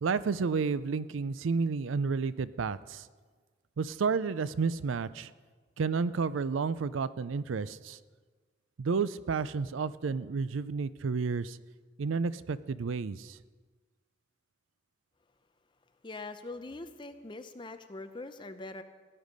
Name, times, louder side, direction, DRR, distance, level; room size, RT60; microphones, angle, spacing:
voice 1, 0.0-3.1 3.8-5.3 5.8-8.0 8.8-11.6 12.0-13.4, right 5 dB, 90° right, 17 dB, 0.5 m, -31 dB
voice 2, 16.0-18.8, left 2 dB, 25° left, 8 dB, 0.7 m, -42 dB
16.5 x 10.0 x 5.3 m, 1.4 s
head